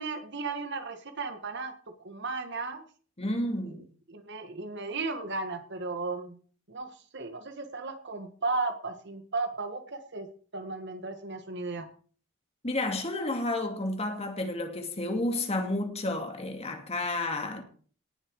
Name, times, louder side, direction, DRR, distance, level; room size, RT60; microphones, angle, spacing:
voice 1, 0.0-1.7 2.0-2.8 3.6-3.8 4.1-6.4 6.7-10.3 10.5-11.9, right 3 dB, 60° right, 1.8 m, -35 dB
voice 2, 3.2-3.8 12.6-17.6, left 2 dB, 30° left, 2.4 m, -31 dB
18.5 x 7.6 x 4.9 m
head